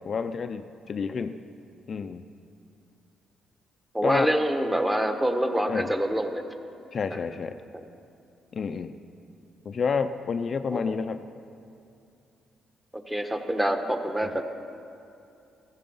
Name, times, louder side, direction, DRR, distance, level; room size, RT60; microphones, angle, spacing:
voice 1, 0.0-1.4 1.9-2.3 4.0-4.3 5.7-5.9 6.9-7.6 8.5-8.9 9.7-11.2 14.2-14.3, left 5 dB, 45° left, 9 dB, 0.5 m, -29 dB
voice 2, 3.9-6.4 7.1-7.2 7.7-7.8 10.7-10.9 12.9-14.4, right 1 dB, 10° right, 6 dB, 1.3 m, -26 dB
15.5 x 14.0 x 5.6 m, 2.6 s
cardioid pair, 90°, 0 cm